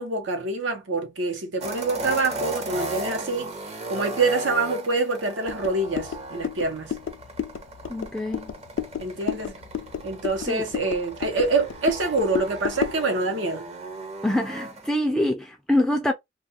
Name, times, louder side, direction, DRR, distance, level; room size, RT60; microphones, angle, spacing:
voice 1, 0.0-3.5 3.9-6.9 9.0-9.5 10.0-13.7, right 3 dB, 85° right, 0.9 m, -26 dB
sound 1, 1.6-14.9, right 2 dB, 35° right, 0.7 m, -36 dB
sound 2, 5.5-13.1, left 7 dB, 90° left, 0.3 m, -33 dB
voice 2, 7.9-8.5 10.5-10.6 14.2-16.1, left 1 dB, 5° left, 0.3 m, -25 dB
2.3 x 2.3 x 2.7 m
head